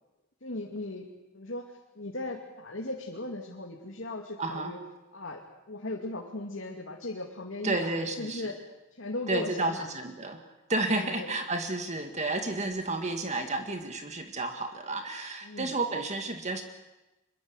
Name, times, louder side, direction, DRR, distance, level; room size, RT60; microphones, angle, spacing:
voice 1, 0.4-1.0 1.3-4.8 5.1-5.4 5.7-8.5 9.0-9.9 10.8-11.3 15.4-15.8, left 2 dB, 85° left, 0 dB, 2.6 m, -37 dB
voice 2, 4.4-4.7 7.6-8.5 9.3-16.6, right 2 dB, 35° right, 5 dB, 2.0 m, -31 dB
25.0 x 22.5 x 8.1 m, 1.0 s
head